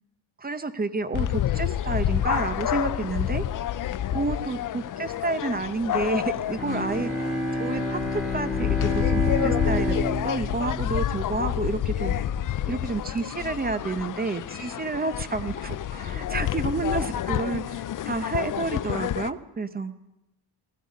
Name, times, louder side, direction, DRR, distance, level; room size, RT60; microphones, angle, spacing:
voice 1, 0.4-3.4 4.1-10.0 10.2-12.1 12.7-19.9, right 3 dB, 20° right, 12 dB, 0.7 m, -30 dB
sound 1, 1.1-19.3, left 11 dB, 45° left, 0.4 m, -29 dB
Bowed string instrument, 6.6-11.8, left 1 dB, ahead, 2.7 m, -29 dB
16.5 x 14.5 x 5.3 m, 0.92 s
cardioid pair, 130°, 49 cm